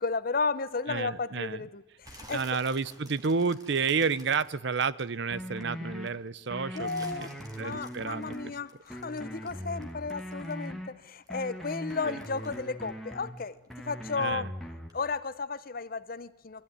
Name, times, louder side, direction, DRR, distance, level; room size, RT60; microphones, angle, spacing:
voice 1, 0.0-2.6 6.7-14.5 14.9-16.6, left 4 dB, 45° left, 15 dB, 0.9 m, -34 dB
voice 2, 0.9-1.6 2.3-7.3 7.6-8.4 12.0-12.2 14.2-14.5, right 5 dB, 60° right, 19 dB, 0.7 m, -30 dB
sound 1, 2.0-5.6 6.0-10.8 11.1-13.8 14.1-14.5 14.9-15.0, right 1 dB, 20° right, 2.3 m, -53 dB
sound 2, 5.3-6.1 6.5-8.5 8.9-10.9 11.3-13.3 13.7-14.9, equal, ahead, 1.8 m, -40 dB
24.0 x 15.0 x 9.6 m, 1.1 s
head